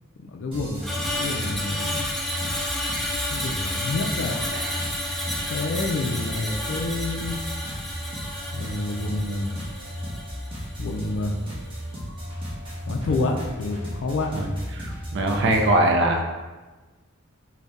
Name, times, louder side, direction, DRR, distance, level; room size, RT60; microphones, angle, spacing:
voice 1, 0.2-0.8 1.2-1.9 3.3-4.4 5.5-7.4 8.5-9.5 10.8-11.3 12.9-14.3, left 2 dB, 70° left, 3 dB, 0.4 m, -28 dB
sound 1, 0.5-15.7, equal, 25° right, 1.0 m, -35 dB
Screech, 0.8-11.2 11.5-11.8, left 1 dB, ahead, 0.4 m, -31 dB
voice 2, 14.8-16.3, right 1 dB, 60° right, 3 dB, 0.5 m, -22 dB
3.9 x 2.2 x 3.5 m, 1.2 s
head